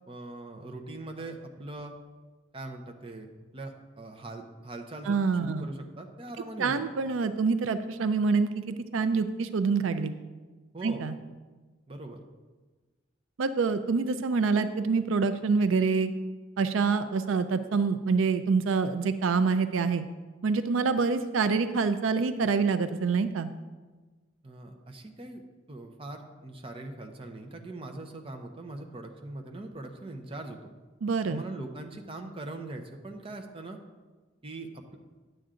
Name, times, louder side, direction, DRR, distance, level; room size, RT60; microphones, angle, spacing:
voice 1, 0.1-1.9 2.5-3.3 3.5-6.8 10.7-11.0 11.9-12.2 24.4-25.4 25.7-30.7 31.3-33.8 34.4-35.0, right 2 dB, 30° right, 4 dB, 0.8 m, -41 dB
voice 2, 5.1-5.7 6.6-10.1 10.8-11.2 13.4-16.1 16.6-20.1 20.4-23.5 31.0-31.4, right 4 dB, 80° right, 11 dB, 0.4 m, -26 dB
10.0 x 7.8 x 3.8 m, 1.3 s
head